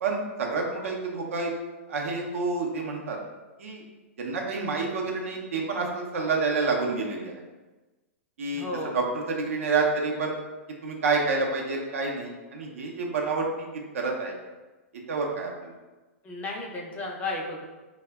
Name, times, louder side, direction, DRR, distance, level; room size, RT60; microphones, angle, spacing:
voice 1, 0.0-1.5 1.9-3.2 3.6-3.8 4.2-7.4 8.4-8.7 8.9-10.3 10.8-14.4 15.1-15.7, right 4 dB, 70° right, 0 dB, 0.5 m, -28 dB
voice 2, 8.5-8.9 16.2-17.6, left 2 dB, 20° left, -2 dB, 0.5 m, -33 dB
3.2 x 2.1 x 2.2 m, 1.2 s
hypercardioid pair, 115°, 8 cm